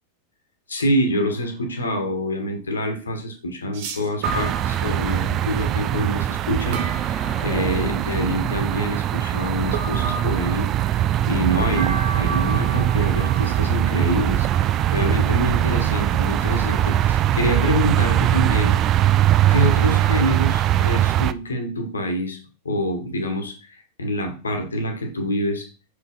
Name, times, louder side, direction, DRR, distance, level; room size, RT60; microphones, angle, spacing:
voice 1, 0.7-18.9 19.5-22.4 22.6-23.7 24.0-25.7, equal, 75° left, 6 dB, 1.5 m, -26 dB
sound 1, 1.1-1.4 3.7-5.2 6.7-8.0 9.7-10.9 11.7-16.3, right 4 dB, 50° right, 1.1 m, -33 dB
sound 2, 4.2-21.3, right 12 dB, 35° right, 0.4 m, -21 dB
Thunder, 6.4-18.3 19.0-19.1, right 1 dB, 5° right, 2.0 m, -44 dB
6.6 x 5.0 x 3.7 m, 0.34 s
figure-of-eight pair, 90°, 0 cm